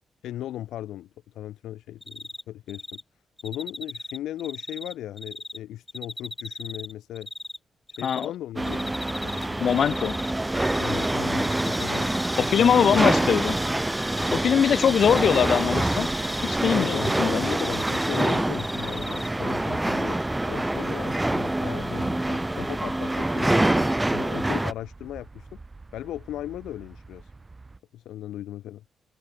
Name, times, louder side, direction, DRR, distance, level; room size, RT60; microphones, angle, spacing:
voice 1, 0.2-1.1 1.3-3.0 3.4-7.3 8.0-10.1 10.8-13.4 16.7-20.2 20.5-25.5 25.9-27.3 27.9-28.8, left 13 dB, 85° left, 1.5 m, -37 dB
Cricket, 2.0-2.4 2.7-3.0 3.4-5.6 5.9-7.6 7.9-8.3 8.7-9.5 9.7-11.1 11.4-13.7 13.9-14.3 14.7-17.2 17.4-19.3, left 1 dB, 15° left, 1.9 m, -37 dB
sound 1, 8.6-24.7, right 1 dB, 15° right, 0.4 m, -26 dB
voice 2, 9.6-10.2 12.4-13.5 14.3-16.1 16.4-17.5, left 8 dB, 70° left, 0.3 m, -22 dB
sound 2, 10.2-27.8, right 3 dB, 30° right, 1.0 m, -48 dB
supercardioid pair, 55°, 0 cm